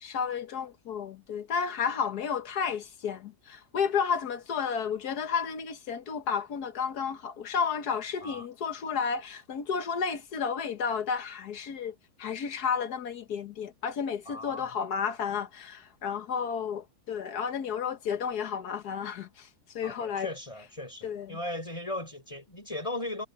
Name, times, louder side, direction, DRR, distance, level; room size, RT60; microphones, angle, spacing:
voice 1, 0.0-20.3 21.0-21.4, left 6 dB, 90° left, 1.8 m, -32 dB
voice 2, 14.3-14.7 19.8-23.3, left 1 dB, 20° left, 6.2 m, -37 dB
omnidirectional pair, 1.6 m